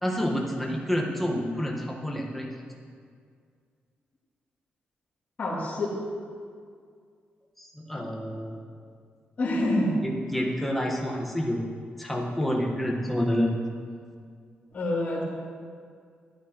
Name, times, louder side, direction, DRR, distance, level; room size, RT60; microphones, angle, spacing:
voice 1, 0.0-2.5 7.6-8.6 10.0-11.7 12.0-13.6, equal, 5° left, -2 dB, 1.6 m, -28 dB
voice 2, 5.4-5.9 9.4-9.9 14.7-15.2, left 1 dB, 45° left, -8 dB, 3.1 m, -26 dB
13.5 x 10.5 x 3.1 m, 2.1 s
cardioid pair, 105°, 4 cm